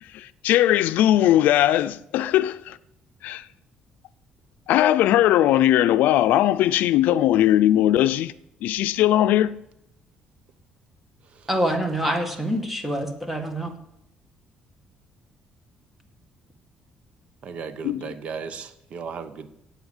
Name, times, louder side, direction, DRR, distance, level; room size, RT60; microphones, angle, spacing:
voice 1, 0.0-2.8 3.2-3.5 4.7-8.3 8.6-9.6 17.8-18.1, left 13 dB, 80° left, 0.5 m, -19 dB
voice 2, 11.5-13.7, equal, 5° right, 1.8 m, -26 dB
voice 3, 17.4-19.5, right 6 dB, 45° right, 1.1 m, -36 dB
17.5 x 8.0 x 7.3 m
cardioid pair, 170°, 3 cm